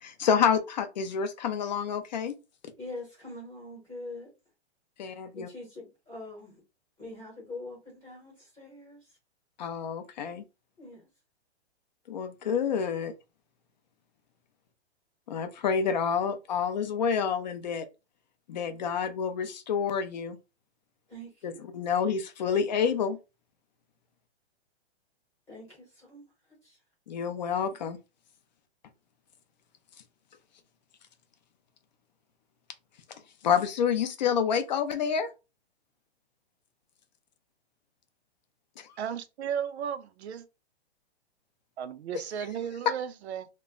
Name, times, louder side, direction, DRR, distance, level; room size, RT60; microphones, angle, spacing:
voice 1, 0.0-2.3 5.0-5.5 9.6-10.4 12.1-13.1 15.3-17.9 18.5-20.4 21.4-23.2 27.1-28.0 33.4-35.3 38.8-39.0, left 7 dB, 40° left, 0.4 m, -28 dB
voice 2, 2.8-4.3 5.0-6.6 7.0-9.1 10.8-11.1 21.1-21.6 25.5-26.2 26.6-26.8, left 2 dB, 15° left, 0.9 m, -44 dB
voice 3, 39.0-40.5 41.8-43.5, right 8 dB, 75° right, 0.5 m, -35 dB
2.2 x 2.0 x 3.6 m
hypercardioid pair, 165°, 34 cm